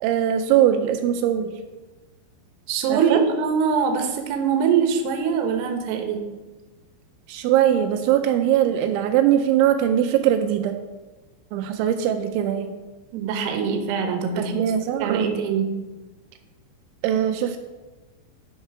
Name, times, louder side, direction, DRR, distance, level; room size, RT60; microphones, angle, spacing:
voice 1, 0.0-1.5 2.9-3.2 7.3-10.7 11.5-12.7 14.4-15.4 17.0-17.6, right 10 dB, 90° right, 6 dB, 2.6 m, -21 dB
voice 2, 2.7-6.2 13.1-14.6 15.0-15.7, right 6 dB, 75° right, 4 dB, 2.5 m, -23 dB
12.0 x 5.7 x 4.7 m, 1.2 s
omnidirectional pair, 5.9 m